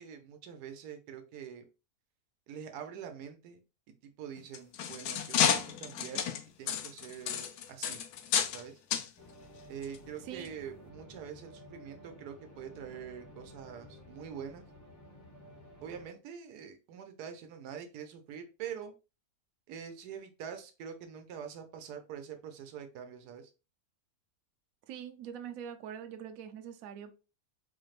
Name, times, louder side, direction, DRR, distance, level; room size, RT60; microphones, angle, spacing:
voice 1, 0.0-1.6 2.5-3.6 4.2-6.2 6.6-8.0 8.5-8.8 9.7-14.6 15.8-18.9 19.7-23.5, right 8 dB, 90° right, 6 dB, 1.2 m, -45 dB
sound 1, 4.4-8.6 8.9-9.1 9.8-10.0 10.5-10.6, left 8 dB, 80° left, 1.1 m, -31 dB
sound 2, 9.2-16.1, left 1 dB, 15° left, 0.6 m, -53 dB
voice 2, 24.9-27.1, right 9 dB, 70° right, 7 dB, 1.0 m, -43 dB
4.2 x 3.2 x 2.4 m, 0.30 s
omnidirectional pair, 1.6 m